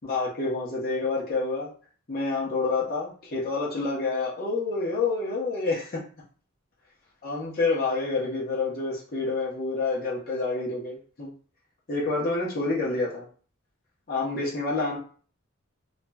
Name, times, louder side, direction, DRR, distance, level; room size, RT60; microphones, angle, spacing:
voice 1, 0.0-1.7 2.1-6.0 7.2-11.3 11.9-13.3 14.1-15.0, left 3 dB, 45° left, -5 dB, 0.9 m, -28 dB
2.9 x 2.5 x 2.2 m, 0.42 s
head